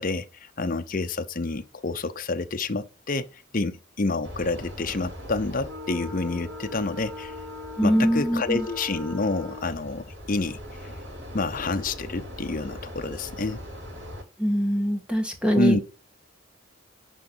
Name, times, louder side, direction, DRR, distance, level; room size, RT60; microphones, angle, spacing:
voice 1, 0.0-3.3 3.5-7.3 7.8-10.6 11.3-13.6 15.6-15.8, left 3 dB, 45° left, 0.8 m, -28 dB
sound 1, 4.2-14.2, left 1 dB, 70° right, 3.1 m, -39 dB
voice 2, 7.8-8.6 14.4-15.8, equal, 5° right, 1.6 m, -23 dB
10.5 x 3.8 x 5.4 m
head